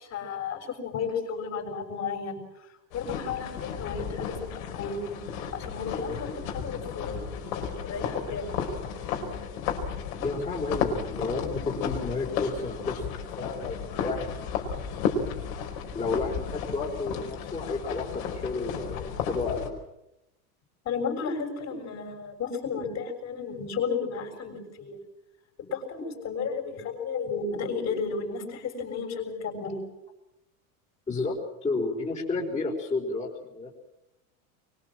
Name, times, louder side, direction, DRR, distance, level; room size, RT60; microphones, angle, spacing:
voice 1, 0.0-2.4 2.9-5.2 5.5-7.2 7.5-8.6 20.9-25.0 25.6-29.8, left 5 dB, 35° left, 4 dB, 6.9 m, -33 dB
sound 1, 2.9-19.7, left 6 dB, 75° left, 5.2 m, -33 dB
voice 2, 10.2-14.9 15.9-19.7 31.1-31.4 31.6-33.7, left 3 dB, 15° left, -4 dB, 4.8 m, -32 dB
24.0 x 23.0 x 7.7 m, 0.89 s
supercardioid pair, 130°, 43 cm